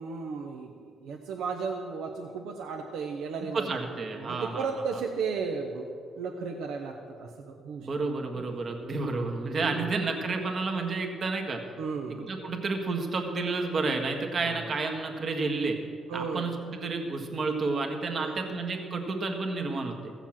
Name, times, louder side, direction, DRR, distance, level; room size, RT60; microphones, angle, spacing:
voice 1, 0.0-3.8 4.1-5.9 6.1-7.9 8.4-8.9 9.6-9.9 11.8-12.3 14.4-14.7 16.1-16.6 18.1-18.6, right 5 dB, 85° right, 2 dB, 0.9 m, -35 dB
voice 2, 3.5-4.7 7.8-11.6 12.1-15.8 16.1-20.1, right 3 dB, 45° right, 3 dB, 1.6 m, -30 dB
15.5 x 7.1 x 7.4 m, 2.4 s
cardioid pair, 90°, 0 cm